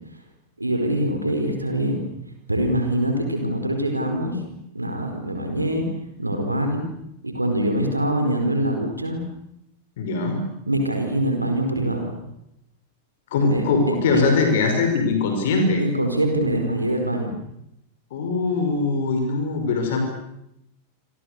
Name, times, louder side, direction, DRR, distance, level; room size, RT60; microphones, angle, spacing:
voice 1, 0.6-2.0 2.5-4.4 4.7-5.9 6.2-6.8 7.2-9.2 10.7-12.1 13.5-14.4 15.8-17.3, right 1 dB, 85° right, 4 dB, 4.6 m, -24 dB
voice 2, 10.0-10.4 13.3-15.8 18.1-20.0, left 4 dB, 55° left, 5 dB, 5.7 m, -21 dB
29.5 x 26.5 x 6.8 m, 0.82 s
figure-of-eight pair, 90°, 0 cm